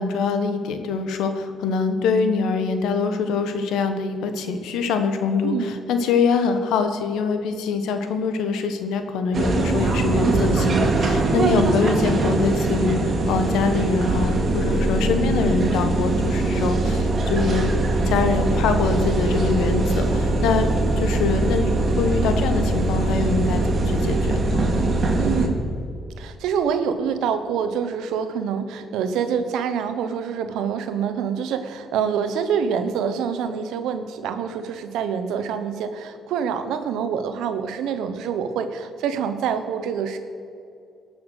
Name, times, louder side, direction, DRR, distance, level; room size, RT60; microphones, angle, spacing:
voice 1, 0.0-17.7 18.0-20.7 21.0-24.6, left 4 dB, 90° left, 8 dB, 1.3 m, -24 dB
voice 2, 5.4-5.7 11.4-11.7 25.2-25.6 26.2-40.2, right 7 dB, 90° right, 9 dB, 1.0 m, -26 dB
sound 1, 9.3-25.5, right 2 dB, 45° right, 2.3 m, -21 dB
18.5 x 7.1 x 6.4 m, 2.4 s
cardioid pair, 90°, 0 cm